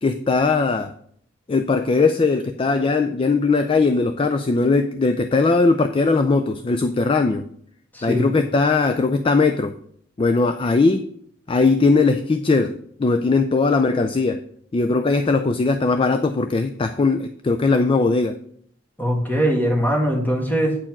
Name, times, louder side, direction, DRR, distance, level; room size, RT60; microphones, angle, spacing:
voice 1, 0.0-0.9 1.5-7.4 8.0-9.7 10.2-11.0 11.5-14.4 14.7-18.4, left 3 dB, 25° left, 8 dB, 0.3 m, -19 dB
voice 2, 7.9-8.3 19.0-20.7, equal, 10° left, 0 dB, 1.6 m, -21 dB
8.8 x 4.3 x 5.9 m, 0.64 s
head